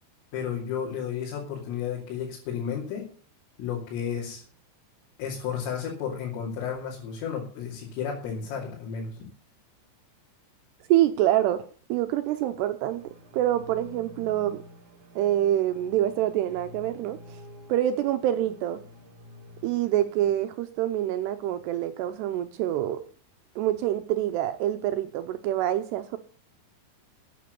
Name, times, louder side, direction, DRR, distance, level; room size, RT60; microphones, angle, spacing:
voice 1, 0.3-3.1 3.6-4.4 5.2-9.2, left 7 dB, 85° left, -4 dB, 5.3 m, -32 dB
voice 2, 10.9-14.6 15.2-17.4 17.7-18.8 19.6-23.1 23.6-26.2, right 12 dB, 85° right, 9 dB, 2.4 m, -26 dB
sound 1, 12.8-20.3, left 1 dB, 55° right, 2.4 m, -49 dB
13.0 x 9.5 x 6.8 m, 0.43 s
omnidirectional pair, 5.7 m